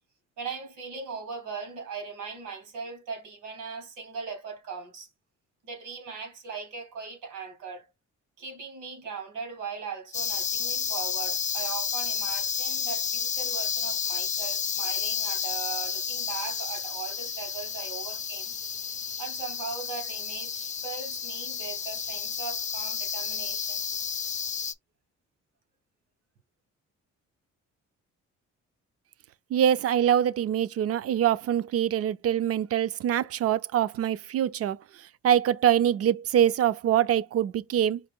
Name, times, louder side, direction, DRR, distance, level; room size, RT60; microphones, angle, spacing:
voice 1, 0.4-5.1 5.6-7.9 8.4-18.5 19.2-23.8, right 5 dB, 90° right, 2.5 m, -39 dB
sound 1, 10.1-24.7, left 7 dB, 25° left, 0.4 m, -31 dB
voice 2, 29.5-34.8 35.2-38.0, right 10 dB, 50° right, 0.4 m, -24 dB
4.9 x 2.2 x 3.7 m
cardioid pair, 90°, 30 cm